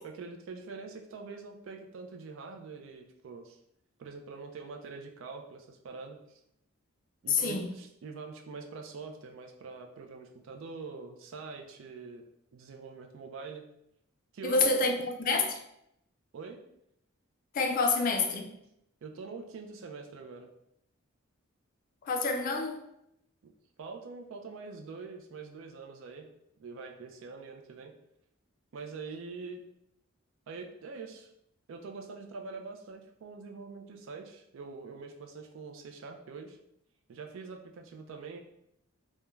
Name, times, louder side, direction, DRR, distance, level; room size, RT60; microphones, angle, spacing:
voice 1, 0.0-3.6 4.0-6.4 7.2-12.2 12.5-13.6 14.3-14.8 16.3-16.7 19.0-20.5 23.4-23.5 23.8-26.3 26.6-27.9 28.7-29.6 30.5-31.3 31.7-36.6 37.1-38.4, right 4 dB, 65° right, 0.4 m, -44 dB
voice 2, 7.3-7.7 14.4-15.6 17.5-18.5 22.0-22.8, left 3 dB, 40° left, 0.3 m, -28 dB
2.3 x 2.1 x 3.0 m
head